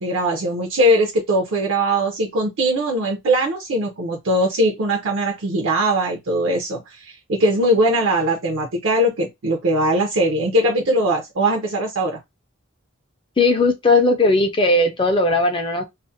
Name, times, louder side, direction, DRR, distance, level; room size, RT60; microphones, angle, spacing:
voice 1, 0.0-12.2, right 1 dB, 65° right, 0.5 m, -20 dB
voice 2, 13.4-15.8, left 2 dB, 25° left, 0.4 m, -17 dB
2.4 x 2.1 x 2.5 m
head